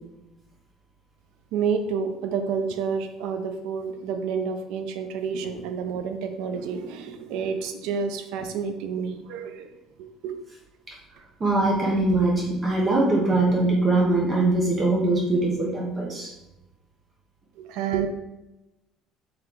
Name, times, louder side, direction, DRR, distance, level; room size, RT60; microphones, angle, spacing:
voice 1, 1.5-10.4 17.6-18.1, right 6 dB, 80° right, 7 dB, 0.4 m, -29 dB
voice 2, 11.4-16.3, right 2 dB, 30° right, -2 dB, 0.8 m, -22 dB
3.2 x 2.9 x 3.8 m, 0.96 s
cardioid pair, 135°, 0 cm